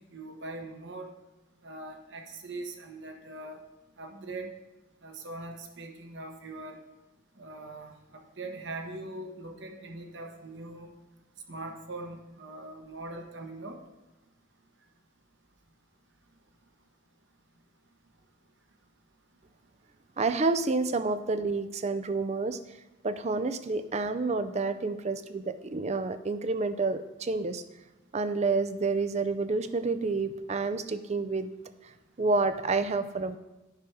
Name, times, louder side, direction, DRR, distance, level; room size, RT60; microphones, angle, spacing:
voice 1, 0.1-1.1 1.6-3.6 4.0-4.5 5.0-6.8 7.4-10.9 11.5-13.8, right 2 dB, 55° right, 3 dB, 1.1 m, -41 dB
voice 2, 20.2-22.6 23.0-27.6 28.1-31.5 32.2-33.4, right 3 dB, 30° right, 12 dB, 0.4 m, -29 dB
9.6 x 6.0 x 4.7 m, 1.1 s
head